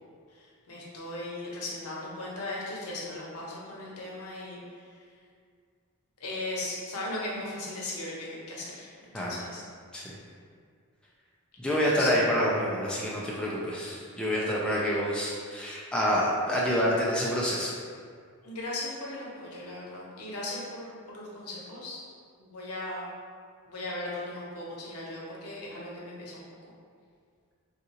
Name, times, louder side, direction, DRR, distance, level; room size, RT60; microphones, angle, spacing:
voice 1, 0.3-4.9 6.2-9.6 12.0-12.1 18.4-22.0 22.4-23.1 23.6-26.4, left 2 dB, 75° left, -4 dB, 0.8 m, -38 dB
voice 2, 11.6-17.7, equal, 5° left, -6 dB, 0.3 m, -27 dB
3.7 x 2.5 x 2.8 m, 2.1 s
head